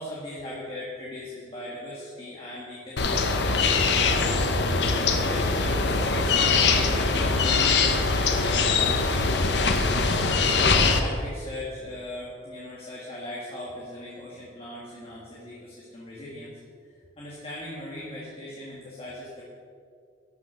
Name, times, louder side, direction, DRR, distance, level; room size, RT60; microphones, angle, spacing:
voice 1, 0.0-10.4 10.9-16.6 16.9-19.4, left 1 dB, 30° left, -6 dB, 1.9 m, -39 dB
sound 1, 3.0-11.0, left 4 dB, 65° left, 0.9 m, -22 dB
12.5 x 6.1 x 6.2 m, 2.2 s
head